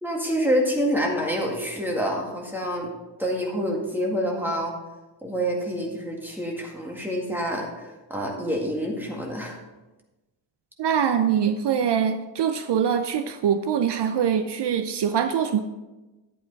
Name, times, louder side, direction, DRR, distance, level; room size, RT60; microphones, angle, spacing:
voice 1, 0.0-2.9 3.2-4.7 5.2-7.7 8.1-9.6, equal, 5° right, -1 dB, 1.9 m, -27 dB
voice 2, 10.8-15.6, right 8 dB, 65° right, 9 dB, 0.7 m, -23 dB
11.0 x 8.9 x 4.1 m, 1.1 s
wide cardioid pair, 165°, 45 cm